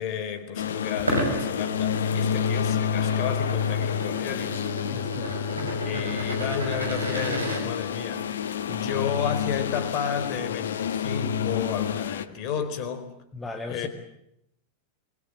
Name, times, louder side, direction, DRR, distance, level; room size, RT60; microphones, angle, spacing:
voice 1, 0.0-4.6 5.8-8.3 8.7-13.1 13.7-13.9, left 7 dB, 40° left, 10 dB, 4.2 m, -32 dB
sound 1, 0.6-12.2, left 8 dB, 65° left, 1.4 m, -29 dB
sound 2, 1.0-7.6, right 1 dB, 80° right, 6.5 m, -33 dB
voice 2, 4.9-5.8 13.3-13.9, left 3 dB, 15° left, 5 dB, 2.3 m, -38 dB
27.0 x 22.0 x 7.8 m, 0.78 s
figure-of-eight pair, 90°, 0 cm